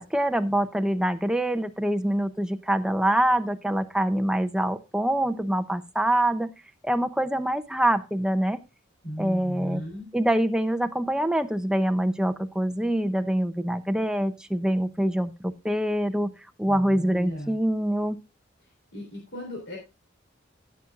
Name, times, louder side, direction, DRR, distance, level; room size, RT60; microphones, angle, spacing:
voice 1, 0.0-6.5 6.8-8.6 9.2-9.8 10.1-16.3 16.6-18.2, right 1 dB, 5° right, 9 dB, 0.6 m, -25 dB
voice 2, 9.0-10.1 16.7-17.6 18.9-19.8, equal, 60° left, -1 dB, 3.8 m, -36 dB
16.0 x 7.3 x 2.4 m, 0.27 s
head